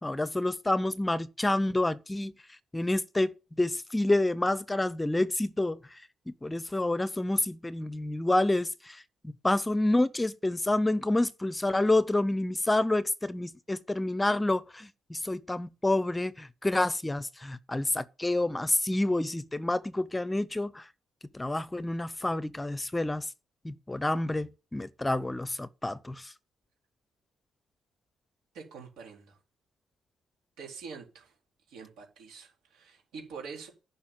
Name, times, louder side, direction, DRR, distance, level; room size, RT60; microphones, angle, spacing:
voice 1, 0.0-2.3 2.7-6.0 6.3-20.9 21.3-23.3 23.6-26.3, left 2 dB, 15° left, 0.6 m, -28 dB
voice 2, 28.5-29.4 30.6-31.3 31.7-33.7, right 5 dB, 85° right, 4.0 m, -45 dB
10.5 x 5.5 x 7.4 m
cardioid pair, 90°, 0 cm